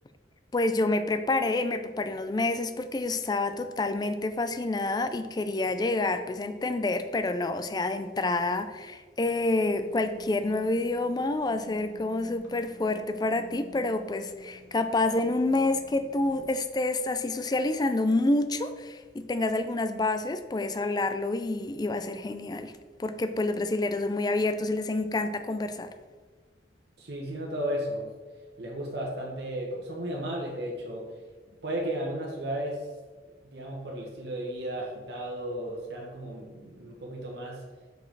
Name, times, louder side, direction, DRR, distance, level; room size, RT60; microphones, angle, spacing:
voice 1, 0.5-22.7 23.0-25.9, left 2 dB, 20° left, 9 dB, 0.3 m, -28 dB
sound 1, 9.3-16.5, right 1 dB, 90° left, 1.3 m, -51 dB
voice 2, 27.0-28.1 28.6-31.1 31.5-32.9 33.5-37.6, right 1 dB, 60° right, -2 dB, 1.1 m, -34 dB
5.3 x 4.6 x 4.7 m, 1.4 s
head